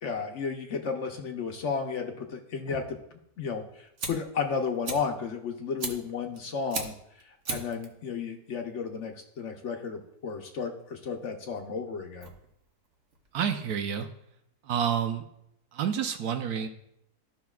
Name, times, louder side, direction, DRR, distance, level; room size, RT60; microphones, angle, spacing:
voice 1, 0.0-3.0 3.4-12.3, left 5 dB, 60° left, 4 dB, 0.9 m, -33 dB
Fire, 3.5-14.0, right 4 dB, 55° right, 1.2 m, -41 dB
voice 2, 13.3-14.1 14.6-15.2 15.7-16.7, right 8 dB, 75° right, 7 dB, 1.2 m, -29 dB
13.5 x 5.9 x 2.3 m, 0.76 s
omnidirectional pair, 1.6 m